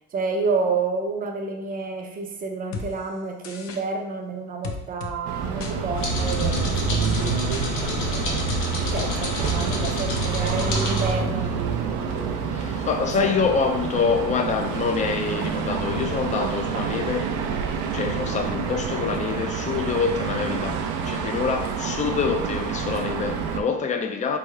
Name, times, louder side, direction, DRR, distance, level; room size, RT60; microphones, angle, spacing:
voice 1, 0.1-8.4 8.8-12.3 13.2-13.3, right 4 dB, 30° right, 0.6 m, -30 dB
sound 1, 2.7-2.9 3.4-3.8 4.6-5.1 5.6-5.7 6.3-6.7 7.0-7.7 8.5-8.6 9.0-9.1 9.4-9.8 10.2-10.3, left 4 dB, 60° left, 0.7 m, -33 dB
sound 2, 5.2-23.6, right 6 dB, 85° right, 0.6 m, -28 dB
sound 3, 5.9-11.1, left 3 dB, 85° left, 1.2 m, -29 dB
voice 2, 11.7-17.3 17.9-24.4, left 5 dB, 25° left, 0.4 m, -26 dB
4.3 x 3.5 x 3.2 m
cardioid pair, 145°, 29 cm